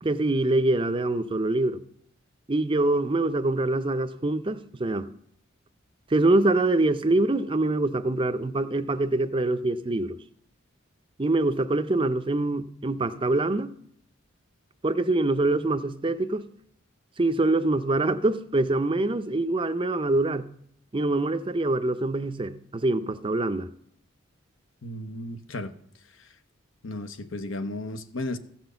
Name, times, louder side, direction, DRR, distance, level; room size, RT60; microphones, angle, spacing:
voice 1, 0.0-1.8 2.5-5.1 6.1-10.2 11.2-13.7 14.8-16.5 17.2-20.5 20.9-23.7, right 2 dB, 25° right, 0.5 m, -24 dB
voice 2, 24.8-25.7 26.1-26.3 26.8-28.4, left 1 dB, 75° left, 0.9 m, -34 dB
15.0 x 6.1 x 6.8 m
head